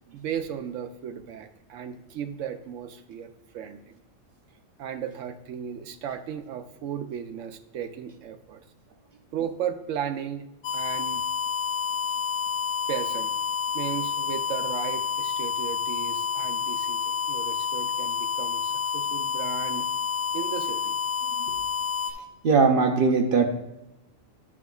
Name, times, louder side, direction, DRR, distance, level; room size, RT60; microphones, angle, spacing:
voice 1, 0.1-3.9 4.8-8.6 9.3-10.5 10.7-11.2 12.9-13.3 13.7-19.9 20.3-21.0, right 9 dB, 75° right, 9 dB, 0.9 m, -35 dB
sound 1, 10.6-22.1, left 6 dB, 70° left, 1.1 m, -29 dB
voice 2, 22.4-23.5, right 4 dB, 50° right, 4 dB, 0.7 m, -20 dB
10.5 x 6.0 x 2.3 m, 0.91 s
omnidirectional pair, 1.4 m